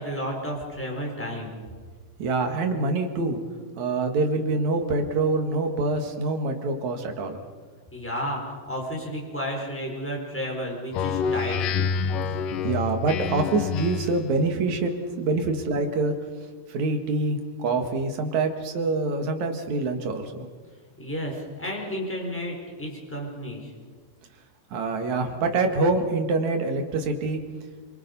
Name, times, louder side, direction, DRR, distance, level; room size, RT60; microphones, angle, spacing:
voice 1, 0.0-1.5 7.9-11.8 21.0-23.7, equal, 5° left, -1 dB, 4.6 m, -32 dB
voice 2, 2.2-3.4 3.8-7.4 12.6-14.9 15.2-16.1 16.7-20.5 24.7-27.4, right 3 dB, 65° right, 5 dB, 3.1 m, -25 dB
Speech synthesizer, 10.9-14.3, left 6 dB, 90° left, 2.5 m, -27 dB
26.0 x 24.0 x 5.5 m, 1.5 s
omnidirectional pair, 3.7 m